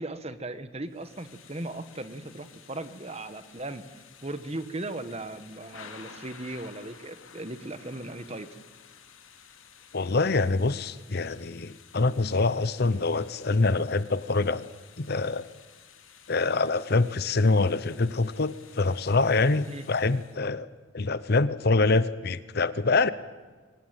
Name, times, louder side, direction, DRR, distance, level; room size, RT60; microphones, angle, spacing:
voice 1, 0.0-8.6 19.7-19.9, right 2 dB, 30° right, 11 dB, 1.2 m, -37 dB
Thunder / Rain, 0.9-20.4, left 7 dB, 70° left, 2.5 m, -53 dB
voice 2, 9.9-14.7 15.0-15.5 16.3-20.7 20.9-23.1, left 3 dB, 50° left, 16 dB, 0.7 m, -25 dB
23.5 x 19.0 x 9.0 m, 1.4 s
head